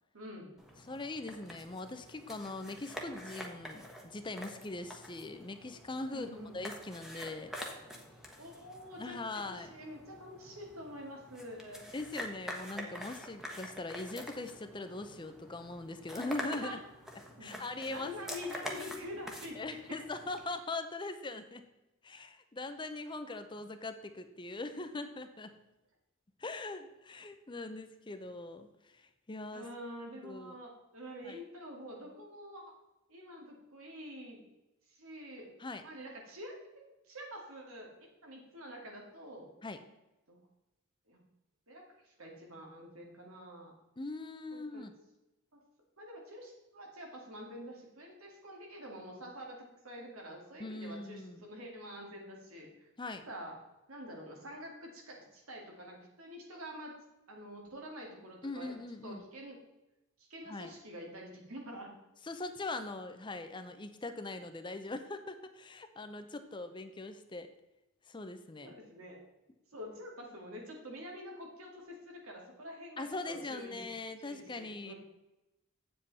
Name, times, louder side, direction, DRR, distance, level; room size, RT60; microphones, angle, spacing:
voice 1, 0.1-0.5 6.1-6.6 8.4-11.9 16.6-16.8 17.4-17.6 17.9-19.8 29.5-32.6 33.1-34.4 34.9-35.5 35.8-36.6 37.1-37.9 38.2-39.5 40.3-40.4 41.1-41.2 41.7-43.7 44.5-44.9 45.5-45.6 46.0-52.9 53.3-53.5 53.9-56.9 57.3-58.7 59.0-59.6 60.3-61.9 68.6-69.2 69.7-73.8 74.2-74.9, equal, 85° right, 0 dB, 2.3 m, -47 dB
sound 1, 0.6-20.4, equal, ahead, 1.1 m, -47 dB
voice 2, 0.9-6.3 6.5-7.5 9.0-9.7 11.9-16.8 17.4-18.2 19.6-21.7 22.0-25.5 26.4-29.7 30.2-30.6 31.2-31.4 35.6-35.8 39.6-39.8 44.0-44.9 50.6-51.4 53.0-53.2 58.4-59.2 60.5-60.7 62.2-67.5 68.1-68.7 73.0-74.9, left 2 dB, 20° left, 9 dB, 0.6 m, -41 dB
8.5 x 7.5 x 4.1 m, 0.99 s
head